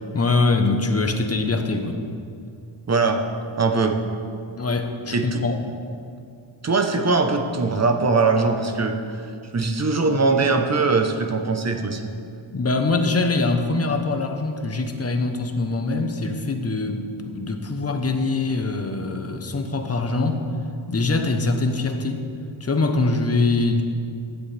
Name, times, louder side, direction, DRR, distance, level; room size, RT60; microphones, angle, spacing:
voice 1, 0.1-2.0 4.6-5.8 12.5-20.4 20.9-22.3 22.6-23.8, left 3 dB, 30° left, 5 dB, 0.9 m, -23 dB
voice 2, 2.9-3.2 3.6-4.0 5.1-5.4 6.6-9.0 9.5-12.0, right 3 dB, 35° right, 5 dB, 0.9 m, -21 dB
15.5 x 10.5 x 3.4 m, 2.5 s
wide cardioid pair, 130°, 48 cm